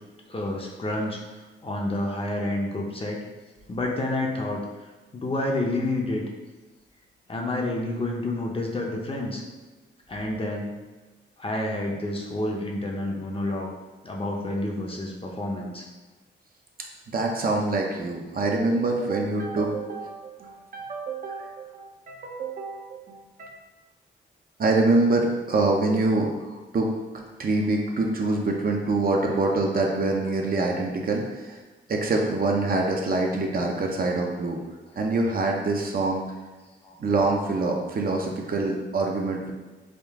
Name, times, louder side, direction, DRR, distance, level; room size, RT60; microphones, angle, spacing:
voice 1, 0.3-1.2 1.6-3.2 3.7-4.6 5.1-6.2 7.3-9.4 10.1-10.7 11.4-13.7 14.0-15.9 36.8-37.0 38.1-38.2, left 1 dB, 30° left, -1 dB, 0.6 m, -29 dB
voice 2, 17.1-23.5 24.6-26.3 26.7-26.9 27.4-31.6 31.9-34.6 35.0-36.2 37.0-39.5, right 2 dB, 50° right, 1 dB, 0.6 m, -25 dB
3.6 x 2.4 x 3.5 m, 1.2 s
cardioid pair, 80°, 20 cm